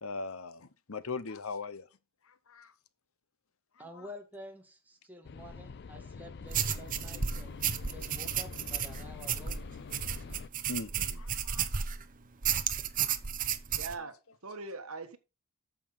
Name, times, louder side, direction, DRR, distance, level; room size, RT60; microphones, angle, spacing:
voice 1, 0.0-1.9 2.3-2.7 3.9-4.1 10.7-11.7 12.5-12.6, left 4 dB, 65° left, 0.9 m, -40 dB
voice 2, 3.8-7.6 7.9-9.6 10.2-10.4, equal, 10° right, 2.1 m, -49 dB
sound 1, 5.2-10.5, left 5 dB, 50° left, 0.4 m, -45 dB
sound 2, 6.5-12.0 12.4-14.0, right 8 dB, 35° right, 0.9 m, -33 dB
voice 3, 13.7-15.2, right 3 dB, 70° right, 1.5 m, -41 dB
9.0 x 6.9 x 5.6 m
head